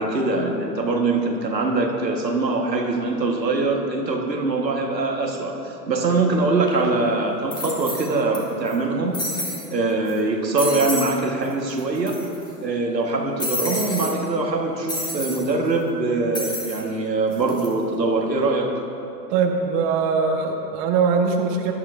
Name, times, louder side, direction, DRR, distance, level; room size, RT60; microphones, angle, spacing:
voice 1, 0.0-9.2 9.7-12.2 12.6-18.8, right 3 dB, 90° right, 1 dB, 1.5 m, -23 dB
sound 1, 6.7-6.8 7.5-8.4 8.7-8.8 9.1-9.7 10.1-10.2 10.6-11.2 11.4-11.5 11.8-12.5 13.4-14.1 14.9-15.4 16.3-16.8 17.3-17.7, left 1 dB, 10° left, 1.9 m, -29 dB
voice 2, 19.3-21.7, right 5 dB, 35° right, 2 dB, 1.3 m, -21 dB
18.0 x 12.0 x 2.6 m, 2.8 s
figure-of-eight pair, 105°, 49 cm